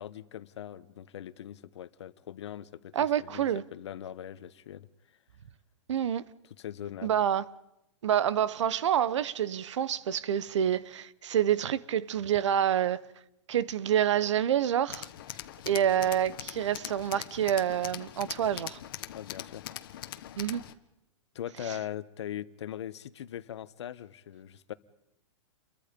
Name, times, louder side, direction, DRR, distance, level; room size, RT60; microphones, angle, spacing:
voice 1, 0.0-5.2 6.4-7.1 15.3-15.4 19.1-19.7 21.3-24.7, left 11 dB, 65° left, 1.1 m, -41 dB
voice 2, 2.9-3.6 5.9-6.2 7.0-7.4 8.0-13.0 13.5-15.1 15.7-18.8 20.4-20.6, right 10 dB, 70° right, 1.0 m, -27 dB
Tools, 14.9-20.7, left 13 dB, 45° left, 1.2 m, -42 dB
29.0 x 23.0 x 5.3 m
supercardioid pair, 175°, 16 cm